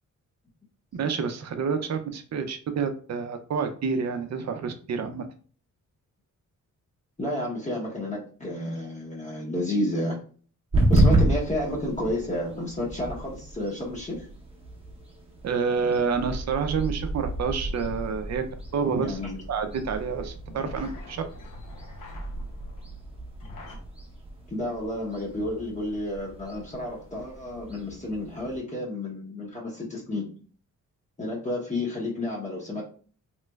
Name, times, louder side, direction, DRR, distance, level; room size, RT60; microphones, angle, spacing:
voice 1, 0.9-5.3 15.4-18.4 18.7-19.2 19.5-21.2, right 5 dB, 55° right, 8 dB, 0.5 m, -28 dB
voice 2, 7.2-10.2 10.9-14.3 19.0-19.4 24.5-30.3 31.2-32.8, left 1 dB, 25° left, -4 dB, 0.8 m, -31 dB
sound 1, 10.7-28.6, right 1 dB, 20° right, 0.7 m, -31 dB
sound 2, 17.0-23.8, left 1 dB, 85° left, 0.7 m, -45 dB
3.2 x 2.9 x 2.2 m, 0.42 s
wide cardioid pair, 130°, 32 cm